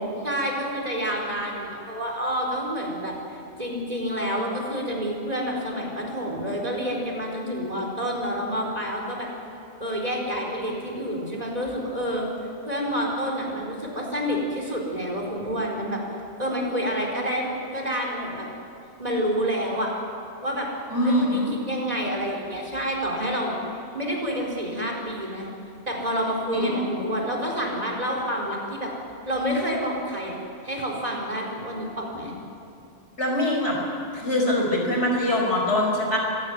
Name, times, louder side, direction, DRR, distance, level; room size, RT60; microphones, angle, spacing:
voice 1, 0.2-9.3 9.8-12.3 12.7-16.0 16.4-18.5 19.0-19.9 20.4-20.7 21.0-23.5 23.9-25.5 25.9-28.9 29.2-30.4 30.6-32.3, equal, 35° right, -1 dB, 4.4 m, -28 dB
voice 2, 20.9-21.5 26.5-26.8 33.2-33.8 34.1-36.2, left 1 dB, 75° left, -1 dB, 5.4 m, -23 dB
25.0 x 17.0 x 9.4 m, 2.6 s
omnidirectional pair, 1.2 m